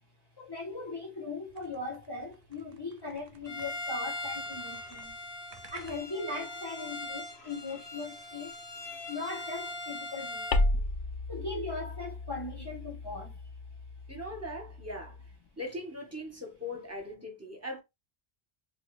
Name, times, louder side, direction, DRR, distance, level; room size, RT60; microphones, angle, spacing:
voice 1, 0.4-5.1 5.7-8.5 9.1-10.8 11.3-13.4, left 3 dB, 30° left, 0.6 m, -39 dB
sound 1, 1.5-4.0 4.2-6.5, right 4 dB, 45° right, 0.6 m, -56 dB
Bowed string instrument, 3.4-10.7, left 2 dB, 90° left, 1.2 m, -40 dB
sound 2, 10.5-15.4, left 2 dB, 65° left, 0.7 m, -34 dB
voice 2, 14.1-15.3 15.6-17.8, left 1 dB, 15° right, 0.9 m, -40 dB
2.9 x 2.6 x 3.0 m
omnidirectional pair, 1.1 m